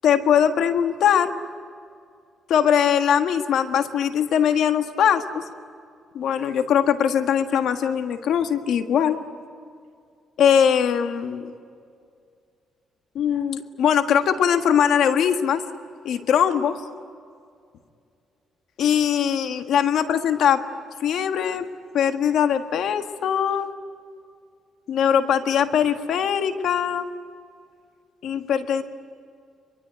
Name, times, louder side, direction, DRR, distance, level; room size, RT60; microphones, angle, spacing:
voice 1, 0.0-1.3 2.5-5.4 6.1-9.2 10.4-11.5 13.1-15.6 16.0-16.8 18.8-20.6 21.0-21.7 21.9-23.7 24.9-27.1 28.2-28.8, left 8 dB, 75° left, 8 dB, 1.6 m, -21 dB
23.5 x 23.5 x 9.4 m, 2.3 s
cardioid pair, 90°, 0 cm